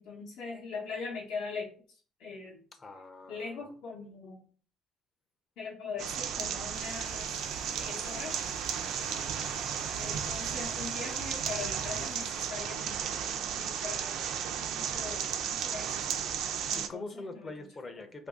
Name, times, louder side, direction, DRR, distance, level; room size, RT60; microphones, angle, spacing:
voice 1, 0.0-2.6 3.3-4.4 5.6-7.3 7.8-8.3 8.8-9.2 9.6-14.3 14.6-15.9 16.7-17.7, left 4 dB, 70° left, 0.8 m, -42 dB
voice 2, 2.8-3.7 16.7-18.3, left 2 dB, 25° left, 0.5 m, -44 dB
sound 1, 6.0-16.9, right 8 dB, 65° right, 0.4 m, -34 dB
sound 2, 6.7-12.5, left 3 dB, 40° left, 1.0 m, -49 dB
3.0 x 2.6 x 3.5 m
cardioid pair, 135°, 0 cm